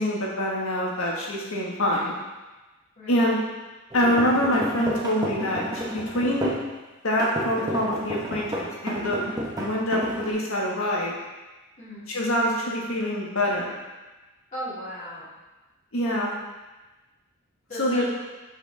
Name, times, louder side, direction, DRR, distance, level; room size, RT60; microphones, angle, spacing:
voice 1, 0.0-2.1 3.1-3.4 3.9-6.5 7.0-9.2 9.6-11.1 12.1-13.7 15.9-16.3 17.8-18.0, equal, 80° left, -3 dB, 1.6 m, -25 dB
voice 2, 3.0-3.3 9.1-9.4 11.8-12.1 14.5-15.3 17.7-18.0, equal, 40° left, -12 dB, 2.4 m, -37 dB
sound 1, 3.9-6.7 7.2-10.3, right 1 dB, 20° right, 1.0 m, -31 dB
6.9 x 5.8 x 3.4 m, 1.2 s
head